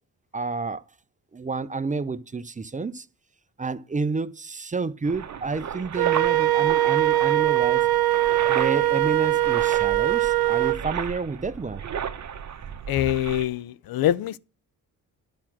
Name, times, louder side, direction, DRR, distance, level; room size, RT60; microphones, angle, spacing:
voice 1, 0.3-0.8 1.3-3.1 3.6-7.8 8.5-11.8, right 4 dB, 20° right, 0.6 m, -30 dB
sound 1, 5.0-13.4, right 8 dB, 50° right, 1.0 m, -35 dB
Wind instrument woodwind instrument, 6.0-10.8, right 14 dB, 70° right, 0.7 m, -21 dB
voice 2, 12.9-14.4, left 12 dB, 70° left, 0.5 m, -24 dB
10.5 x 6.0 x 7.5 m
cardioid pair, 90°, 37 cm